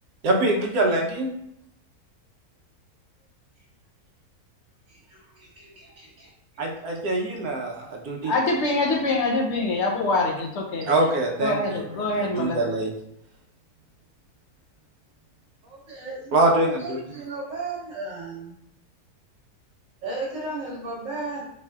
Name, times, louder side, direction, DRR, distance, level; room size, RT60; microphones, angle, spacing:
voice 1, 0.2-1.3 6.6-8.3 10.9-12.9 16.3-17.0, right 2 dB, 75° right, 1 dB, 1.2 m, -24 dB
voice 2, 4.9-6.3 15.6-18.6 20.0-21.5, right 2 dB, 55° right, -4 dB, 1.3 m, -35 dB
voice 3, 8.2-10.9 11.4-12.6, left 2 dB, 65° left, 1 dB, 0.7 m, -24 dB
4.3 x 4.0 x 2.3 m, 0.76 s
omnidirectional pair, 1.7 m